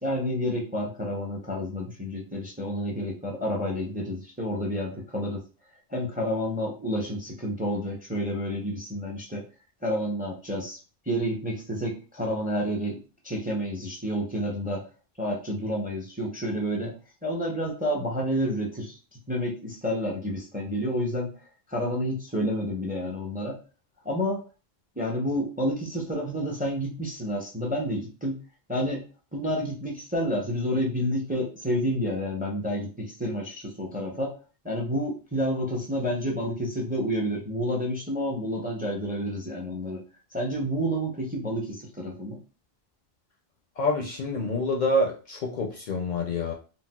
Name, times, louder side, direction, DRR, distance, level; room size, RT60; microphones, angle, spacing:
voice 1, 0.0-5.4 5.9-9.4 9.8-10.8 11.1-13.0 13.2-14.8 15.2-16.9 17.2-19.0 19.3-21.3 21.7-23.6 24.0-24.4 25.0-28.4 28.7-34.3 34.6-40.0 40.3-42.4, equal, 10° right, -1 dB, 0.5 m, -29 dB
voice 2, 43.8-46.5, left 1 dB, 55° left, 1 dB, 0.6 m, -27 dB
4.0 x 2.0 x 2.2 m, 0.34 s
omnidirectional pair, 1.0 m